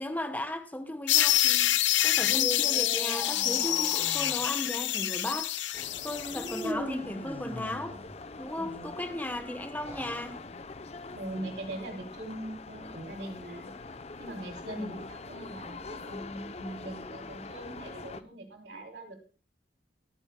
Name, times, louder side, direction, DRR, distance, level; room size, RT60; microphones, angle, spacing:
voice 1, 0.0-1.8 2.0-5.5 6.0-8.0 8.4-10.4 14.7-15.0, left 1 dB, 10° left, 1.0 m, -36 dB
sound 1, 1.1-6.7, left 13 dB, 80° left, 0.7 m, -27 dB
sound 2, 2.2-4.5 6.3-8.1 9.7-10.3, equal, 10° right, 2.5 m, -39 dB
sound 3, 5.7-18.2, left 3 dB, 35° left, 0.6 m, -44 dB
voice 2, 8.5-8.9 11.1-13.7 14.2-19.2, right 1 dB, 65° right, 3.3 m, -41 dB
25.0 x 9.7 x 2.2 m
head